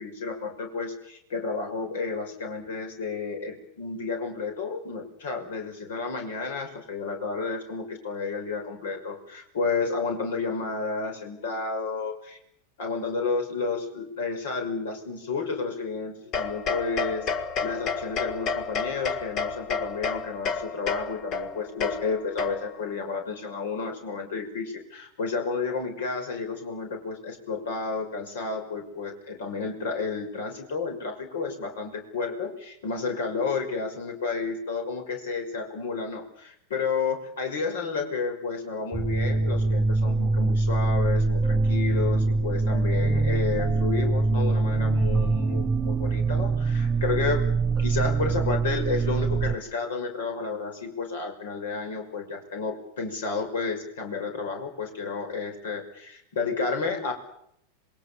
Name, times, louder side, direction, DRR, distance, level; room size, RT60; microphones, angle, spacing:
voice 1, 0.0-12.4 12.8-17.3 17.6-47.4 47.8-57.1, left 4 dB, 60° left, 5 dB, 5.6 m, -31 dB
sound 1, 16.3-22.9, left 5 dB, 35° left, 1.7 m, -31 dB
sound 2, 38.9-49.6, right 3 dB, 20° right, 0.9 m, -24 dB
27.0 x 22.0 x 7.2 m, 0.73 s
figure-of-eight pair, 90°, 0 cm